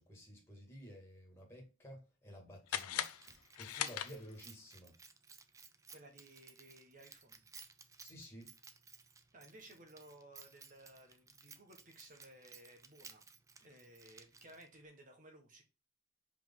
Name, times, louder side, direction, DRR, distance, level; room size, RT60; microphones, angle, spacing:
voice 1, 0.0-3.1 3.6-4.9 8.0-8.5, equal, 10° left, 2.2 m, -53 dB
sound 1, 2.7-4.6, left 11 dB, 90° left, 0.5 m, -40 dB
Keys jangling, 2.7-14.8, right 5 dB, 15° right, 0.4 m, -58 dB
voice 2, 5.9-7.4 9.3-13.2 13.6-15.6, right 1 dB, 35° right, 1.5 m, -58 dB
5.1 x 4.9 x 3.8 m
head